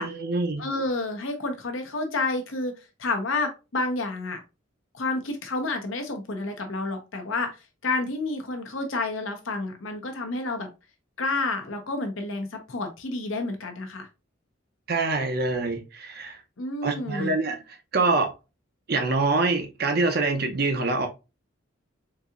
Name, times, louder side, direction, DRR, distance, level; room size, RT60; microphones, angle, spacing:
voice 1, 0.0-0.6 14.9-16.4 16.8-18.3 18.9-21.1, right 3 dB, 50° right, 0.6 m, -25 dB
voice 2, 0.6-4.4 4.9-7.5 7.8-10.7 11.2-14.1 16.6-17.3, left 2 dB, 75° left, 0.8 m, -29 dB
3.9 x 2.8 x 2.4 m
head